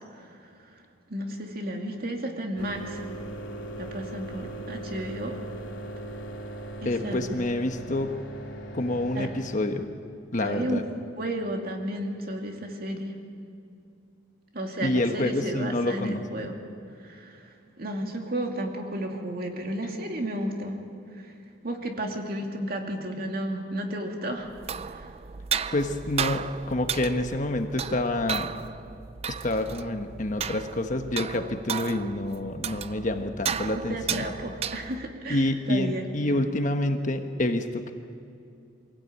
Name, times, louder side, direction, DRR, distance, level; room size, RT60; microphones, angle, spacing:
voice 1, 1.1-3.0 3.8-5.4 6.8-7.3 9.1-9.3 10.4-10.8 11.2-13.2 14.5-16.6 17.0-20.8 21.2-21.3 21.6-24.5 24.9-25.1 33.7-36.1, right 1 dB, 50° right, 2 dB, 2.5 m, -33 dB
sound 1, 2.6-9.6, right 1 dB, 70° left, 2.7 m, -39 dB
voice 2, 6.8-8.2 8.7-9.9 10.3-10.8 14.8-16.5 25.7-28.5 29.3-34.2 35.3-37.9, left 1 dB, 40° left, 6 dB, 1.2 m, -28 dB
sound 2, 24.5-35.2, right 7 dB, 30° right, 0.5 m, -34 dB
24.0 x 16.5 x 8.6 m, 2.5 s
head